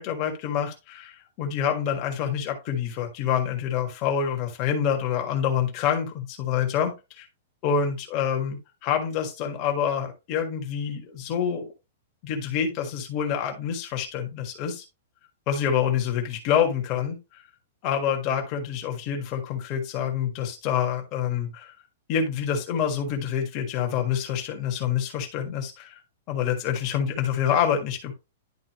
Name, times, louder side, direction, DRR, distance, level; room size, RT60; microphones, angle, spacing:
voice 1, 0.0-7.3 7.6-11.7 12.2-14.8 15.5-17.4 17.8-21.7 22.1-26.0 26.3-28.1, left 8 dB, 25° left, 3 dB, 1.5 m, -27 dB
11.0 x 3.9 x 3.0 m, 0.26 s
supercardioid pair, 175°, 0 cm